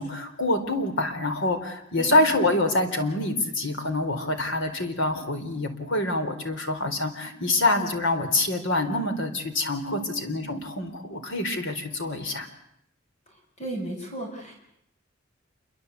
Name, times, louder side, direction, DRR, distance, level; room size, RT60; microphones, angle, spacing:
voice 1, 0.0-12.5, left 2 dB, 65° left, 8 dB, 4.1 m, -26 dB
voice 2, 13.6-14.6, right 1 dB, 35° left, 1 dB, 6.8 m, -35 dB
28.0 x 23.5 x 8.3 m, 0.75 s
head